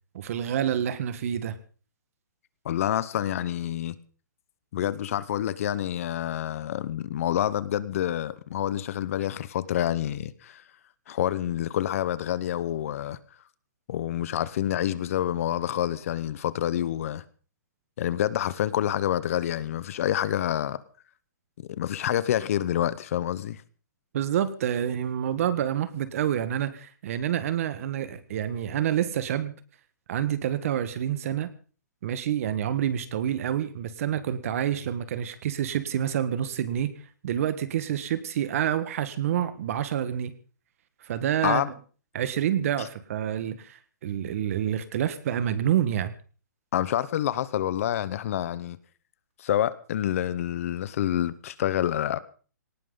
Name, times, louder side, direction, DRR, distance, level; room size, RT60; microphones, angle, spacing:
voice 1, 0.1-1.6 24.1-29.6 30.1-31.5 32.0-36.9 37.2-40.3 41.0-41.6 42.1-46.1, right 10 dB, 50° right, 13 dB, 1.6 m, -28 dB
voice 2, 2.6-4.0 4.7-10.6 11.1-13.2 13.9-17.2 18.0-20.8 21.6-23.6 41.4-41.7 42.8-42.9 46.7-48.8 49.4-52.2, left 11 dB, 50° left, 17 dB, 1.0 m, -27 dB
18.5 x 18.5 x 4.0 m, 0.39 s
hypercardioid pair, 155°, 10 cm